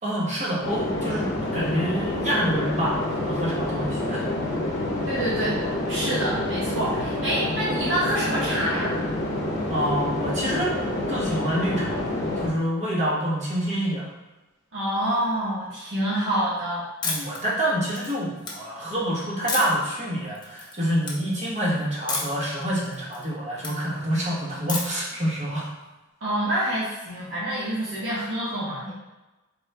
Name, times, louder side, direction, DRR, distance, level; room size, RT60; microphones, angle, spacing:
voice 1, 0.0-4.3 9.7-10.7 11.1-12.0 12.4-14.1 17.0-25.7, equal, 35° right, -7 dB, 1.3 m, -27 dB
sound 1, 0.6-12.5, left 1 dB, 55° left, 0.7 m, -28 dB
voice 2, 5.0-5.6 5.9-9.0 14.7-16.9 26.2-28.9, right 1 dB, 65° right, -9 dB, 1.3 m, -27 dB
sound 2, 17.0-17.4 17.8-18.5 19.5-19.9 20.3-20.7 21.0-21.2 22.1-22.4 22.8-23.7 24.7-25.1, left 3 dB, 20° left, 0.7 m, -30 dB
4.3 x 2.9 x 3.4 m, 1.1 s
head